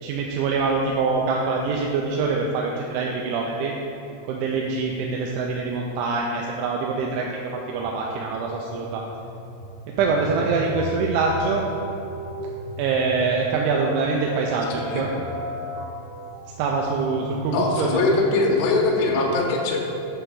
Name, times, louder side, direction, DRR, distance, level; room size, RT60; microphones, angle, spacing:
voice 1, 0.0-3.7 4.3-9.1 9.9-11.6 12.8-15.1 16.6-18.0, right 4 dB, 85° right, -1 dB, 2.8 m, -24 dB
sound 1, 7.7-18.6, equal, 65° right, 1.7 m, -37 dB
voice 2, 17.5-19.8, left 3 dB, 85° left, -1 dB, 1.9 m, -21 dB
7.8 x 3.4 x 6.2 m, 2.8 s
omnidirectional pair, 5.2 m